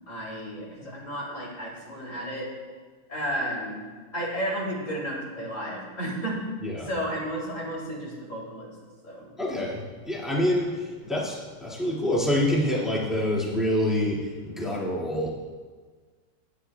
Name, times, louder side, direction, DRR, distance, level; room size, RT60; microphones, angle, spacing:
voice 1, 0.1-2.5 3.1-3.8 4.1-6.4 6.8-8.7 9.0-9.3, equal, 35° left, -4 dB, 3.2 m, -32 dB
voice 2, 9.4-15.3, left 1 dB, ahead, -6 dB, 1.8 m, -26 dB
16.0 x 9.8 x 2.3 m, 1.5 s
omnidirectional pair, 2.3 m